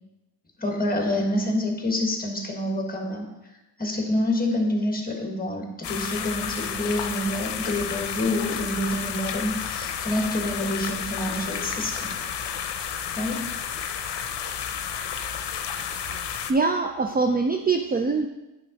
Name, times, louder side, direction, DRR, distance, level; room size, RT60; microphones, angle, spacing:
voice 1, 0.6-3.3 3.8-12.1 13.1-13.5 15.8-15.9, left 1 dB, 20° left, 2 dB, 1.5 m, -27 dB
sound 1, 5.8-16.5, left 8 dB, 70° left, 0.7 m, -31 dB
voice 2, 16.5-18.3, right 4 dB, 20° right, 4 dB, 0.4 m, -23 dB
9.1 x 3.7 x 5.2 m, 1.0 s
cardioid pair, 90°, 43 cm